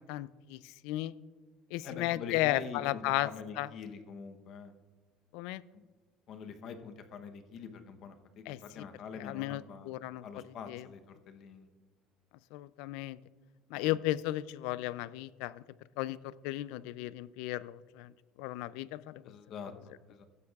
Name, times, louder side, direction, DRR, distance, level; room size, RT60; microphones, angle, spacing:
voice 1, 0.1-0.6 0.8-1.1 1.7-3.3 3.6-3.7 5.3-5.6 8.5-8.6 9.2-10.2 10.7-10.8 12.5-13.2 13.7-15.6 16.0-18.1 18.4-19.2, left 16 dB, 70° left, 18 dB, 0.3 m, -34 dB
voice 2, 1.8-4.7 5.7-5.8 6.3-10.0 10.2-11.7 13.8-14.0 19.2-20.2, left 6 dB, 40° left, 8 dB, 0.8 m, -45 dB
15.0 x 9.9 x 2.4 m, 1.4 s
cardioid pair, 175°, 0 cm